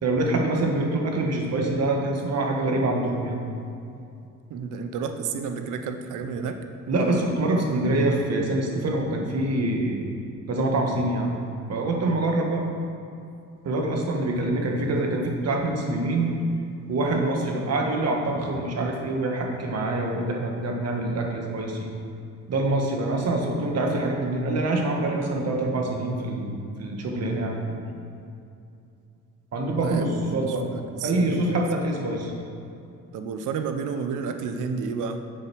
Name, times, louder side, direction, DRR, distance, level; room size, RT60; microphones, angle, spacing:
voice 1, 0.0-3.4 6.9-10.0 10.5-11.3 11.7-12.7 13.6-16.3 16.9-21.9 22.5-27.8 29.5-30.6 31.0-32.3, right 2 dB, 55° right, 1 dB, 1.6 m, -25 dB
voice 2, 4.5-6.6 29.7-31.6 33.1-35.2, right 5 dB, 85° right, 7 dB, 0.8 m, -31 dB
8.0 x 6.3 x 6.2 m, 2.6 s
cardioid pair, 90°, 30 cm